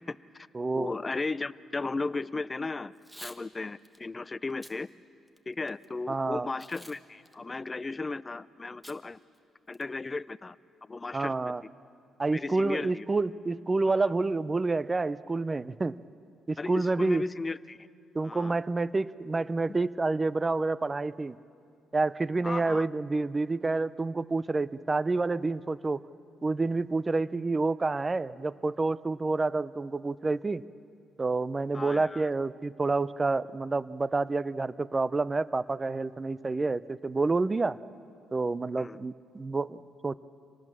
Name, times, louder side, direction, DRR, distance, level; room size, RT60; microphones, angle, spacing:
voice 1, 0.0-0.5 0.7-3.0 3.2-4.9 5.5-9.2 9.7-10.6 10.9-11.5 12.2-13.1 14.0-14.1 16.6-17.9 18.2-18.6 19.7-19.8 22.4-22.9 31.7-32.3 38.8-39.0, left 3 dB, 25° left, 18 dB, 0.5 m, -35 dB
voice 2, 0.5-0.9 6.1-6.5 11.1-11.6 12.2-16.0 16.5-17.2 18.1-21.4 21.9-26.0 26.4-30.6 31.2-37.8 38.3-40.1, right 3 dB, 25° right, 18 dB, 0.5 m, -28 dB
Packing tape duct tape / Tearing, 2.9-3.4 3.8-4.0 4.5-4.8 5.3-5.9 6.6-7.0 7.3-7.4 8.8-9.0 9.3-9.4 9.7-10.1, equal, 5° right, 1.3 m, -48 dB
26.5 x 19.0 x 7.4 m, 2.4 s
cardioid pair, 90°, 0 cm